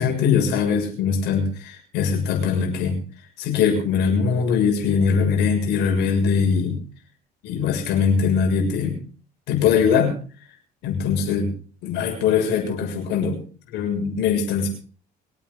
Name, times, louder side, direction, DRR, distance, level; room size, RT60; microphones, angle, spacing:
voice 1, 0.0-3.0 3.4-6.8 7.4-9.0 9.5-10.1 10.8-11.5 11.8-13.4 13.7-14.7, left 6 dB, 85° left, 3 dB, 7.0 m, -21 dB
24.5 x 9.3 x 5.5 m, 0.40 s
cardioid pair, 110°, 17 cm